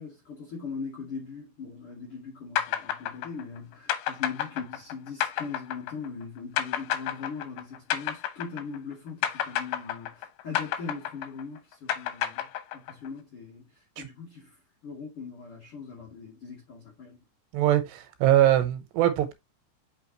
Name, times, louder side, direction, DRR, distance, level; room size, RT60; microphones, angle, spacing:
voice 1, 0.0-12.5 12.7-13.7 14.0-14.5 14.8-17.2, left 5 dB, 40° left, 2.2 m, -40 dB
sound 1, 2.6-8.9 9.2-13.1, left 11 dB, 80° left, 3.1 m, -30 dB
voice 2, 17.5-19.3, right 12 dB, 80° right, 3.0 m, -22 dB
6.7 x 5.5 x 3.0 m
omnidirectional pair, 5.0 m